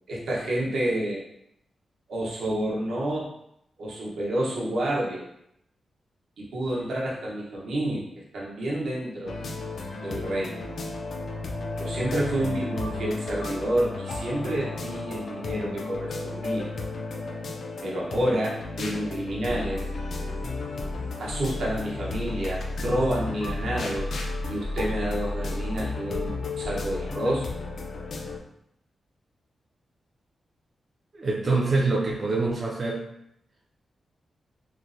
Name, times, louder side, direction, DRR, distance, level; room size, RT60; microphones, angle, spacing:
voice 1, 0.1-1.2 2.1-3.3 3.8-5.2 6.4-9.4 10.0-10.7 11.8-16.7 17.8-19.9 21.2-24.1 24.5-27.5, right 1 dB, 80° right, -5 dB, 0.8 m, -29 dB
sound 1, 9.3-28.4, left 3 dB, 55° left, 0.3 m, -33 dB
voice 2, 31.1-33.0, right 3 dB, 35° right, -4 dB, 0.3 m, -25 dB
3.0 x 2.1 x 2.5 m, 0.77 s
wide cardioid pair, 165°, 0 cm